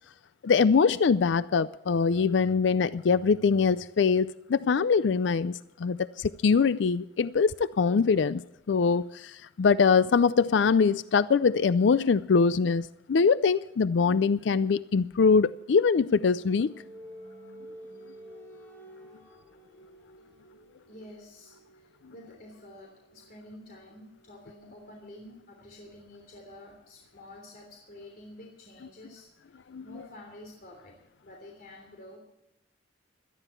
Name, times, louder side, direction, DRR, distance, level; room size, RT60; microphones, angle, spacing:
voice 1, 0.4-16.7 29.7-29.8, left 5 dB, 70° left, 0.4 m, -23 dB
sound 1, 15.4-26.9, equal, 10° left, 5.9 m, -52 dB
voice 2, 20.9-32.2, left 1 dB, 50° left, 3.2 m, -49 dB
18.0 x 13.5 x 4.5 m
head